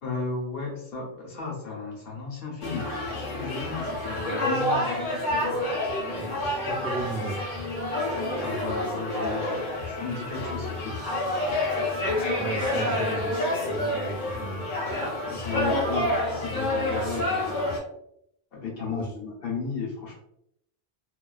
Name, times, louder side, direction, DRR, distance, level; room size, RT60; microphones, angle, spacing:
voice 1, 0.0-5.6 6.4-6.7 8.4-11.0 15.3-17.8 18.5-20.2, left 4 dB, 70° left, -2 dB, 1.0 m, -34 dB
sound 1, 2.6-17.8, left 1 dB, 55° left, 0.9 m, -28 dB
voice 2, 6.1-7.5 12.4-13.4 13.6-14.7 18.9-19.1, right 2 dB, 5° left, -6 dB, 0.5 m, -35 dB
2.3 x 2.3 x 2.3 m, 0.75 s
omnidirectional pair, 1.0 m